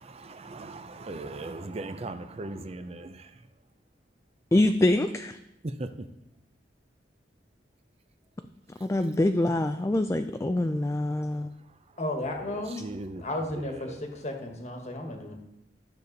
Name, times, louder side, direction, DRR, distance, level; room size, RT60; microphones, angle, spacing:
voice 1, 0.0-3.5 5.6-6.1 8.8-8.9 11.6-12.0 12.3-13.2 13.5-14.1, right 2 dB, 35° right, 9 dB, 0.5 m, -39 dB
voice 2, 4.5-5.4 8.8-11.5, left 1 dB, 15° left, 8 dB, 0.3 m, -25 dB
voice 3, 12.0-12.8 13.2-15.4, left 1 dB, 40° left, 3 dB, 1.4 m, -34 dB
12.0 x 6.8 x 4.0 m, 0.85 s
head